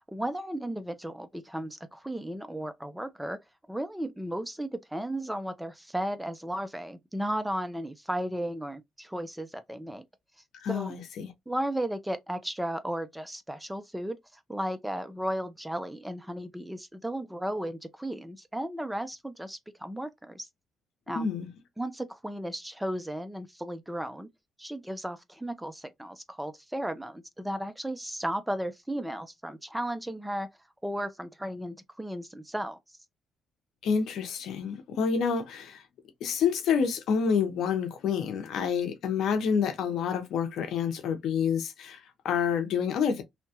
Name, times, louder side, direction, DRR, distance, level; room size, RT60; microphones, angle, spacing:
voice 1, 0.1-3.4 3.7-10.0 10.7-11.0 11.5-14.2 14.5-20.5 21.1-21.3 21.8-24.3 24.6-30.5 30.8-32.8, right 1 dB, 5° right, 0.4 m, -34 dB
voice 2, 10.6-11.3 21.2-21.5 33.8-35.8 36.2-43.2, left 6 dB, 75° left, 0.7 m, -28 dB
2.8 x 2.2 x 2.8 m
cardioid pair, 90°, 0 cm